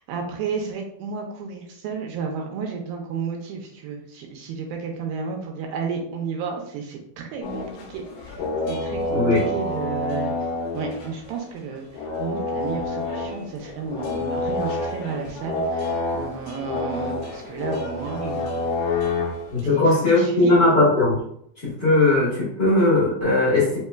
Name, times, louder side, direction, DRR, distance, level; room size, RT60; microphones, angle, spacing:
voice 1, 0.0-10.3 10.7-18.6 18.9-19.1 19.6-20.7, right 5 dB, 80° right, 1 dB, 2.3 m, -32 dB
sound 1, 7.4-11.6 11.9-19.6, left 2 dB, 85° left, 1.4 m, -28 dB
voice 2, 9.1-9.5 19.5-21.2 21.6-23.8, left 2 dB, 50° left, -10 dB, 1.2 m, -19 dB
5.5 x 2.9 x 2.3 m, 0.70 s
omnidirectional pair, 4.3 m